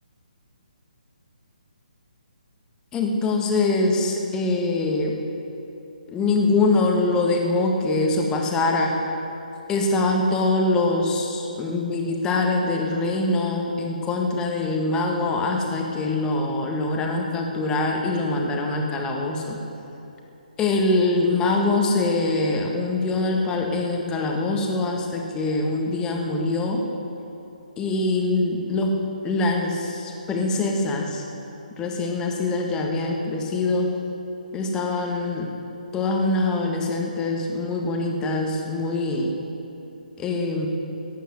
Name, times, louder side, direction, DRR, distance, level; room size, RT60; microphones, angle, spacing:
voice 1, 2.9-5.2 6.1-9.0 9.7-19.6 20.6-26.9 27.8-31.2 31.8-34.0 34.5-35.5 35.9-39.4 40.2-40.7, left 2 dB, 15° left, 1 dB, 1.6 m, -23 dB
15.0 x 10.0 x 8.1 m, 2.9 s
figure-of-eight pair, 140°, 5 cm